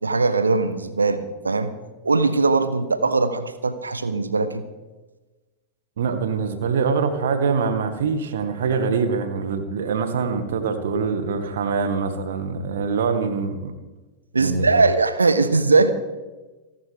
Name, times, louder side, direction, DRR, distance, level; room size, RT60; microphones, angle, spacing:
voice 1, 0.0-1.7 2.0-4.6 14.3-15.9, right 3 dB, 75° right, 12 dB, 1.2 m, -20 dB
voice 2, 6.0-13.7 14.4-14.8, right 5 dB, 60° right, 8 dB, 1.9 m, -24 dB
29.0 x 11.5 x 3.6 m, 1.2 s
figure-of-eight pair, 90°, 0 cm